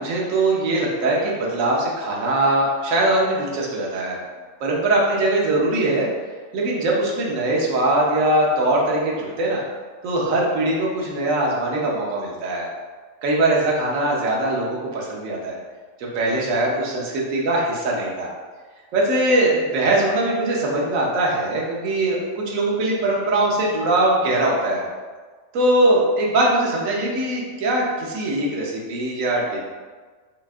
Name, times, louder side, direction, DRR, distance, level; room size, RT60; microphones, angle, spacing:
voice 1, 0.0-4.2 4.6-6.1 6.5-9.6 10.0-12.7 13.2-15.6 16.0-18.3 18.9-24.8 25.5-29.6, right 2 dB, 90° right, -3 dB, 1.1 m, -21 dB
5.3 x 2.3 x 2.4 m, 1.4 s
omnidirectional pair, 1.4 m